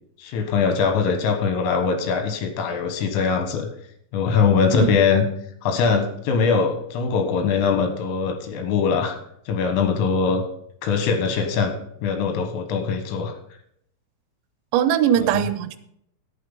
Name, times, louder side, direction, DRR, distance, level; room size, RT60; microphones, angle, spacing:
voice 1, 0.2-3.7 4.1-5.3 5.6-9.2 9.5-10.4 10.8-11.7 12.0-13.3, left 5 dB, 80° left, 3.9 m, -22 dB
voice 2, 14.7-15.8, right 10 dB, 85° right, 3.5 m, -20 dB
11.0 x 8.8 x 5.3 m
omnidirectional pair, 5.9 m